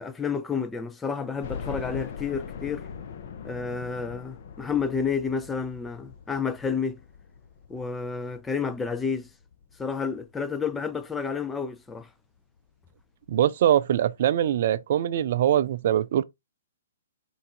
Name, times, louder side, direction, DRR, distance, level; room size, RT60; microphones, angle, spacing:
voice 1, 0.0-2.9 3.4-7.0 7.7-9.3 9.8-12.1, left 5 dB, 10° left, 0.4 m, -30 dB
sound 1, 1.4-10.3 10.8-10.9 11.3-11.4 12.6-12.7 12.9-13.0, left 6 dB, 55° left, 0.6 m, -41 dB
voice 2, 13.3-16.2, right 11 dB, 55° right, 0.4 m, -23 dB
3.9 x 2.4 x 4.4 m
hypercardioid pair, 130°, 0 cm